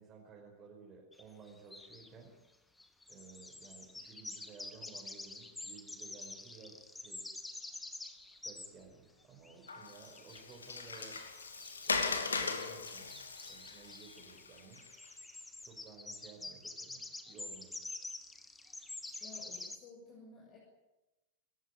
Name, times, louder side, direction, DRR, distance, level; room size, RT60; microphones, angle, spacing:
voice 1, 0.0-2.3 3.1-7.3 8.4-11.2 11.8-13.1 13.5-14.8 15.6-17.8, right 5 dB, 25° right, -1 dB, 5.2 m, -55 dB
sound 1, 1.1-1.2 1.5-2.1 2.8-8.7 9.2-19.8, left 2 dB, 10° left, 2.2 m, -47 dB
Water, 9.7-15.1, left 4 dB, 75° left, 2.6 m, -39 dB
voice 2, 19.2-20.6, left 4 dB, 35° left, 0 dB, 6.7 m, -54 dB
27.5 x 15.0 x 9.9 m, 1.0 s
figure-of-eight pair, 90°, 0 cm